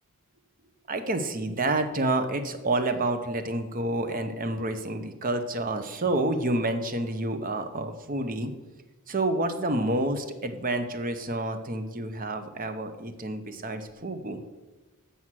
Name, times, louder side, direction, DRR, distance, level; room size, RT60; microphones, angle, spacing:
voice 1, 0.9-8.5 9.1-14.4, right 2 dB, 40° right, 8 dB, 0.8 m, -29 dB
7.1 x 6.2 x 7.5 m, 1.2 s
head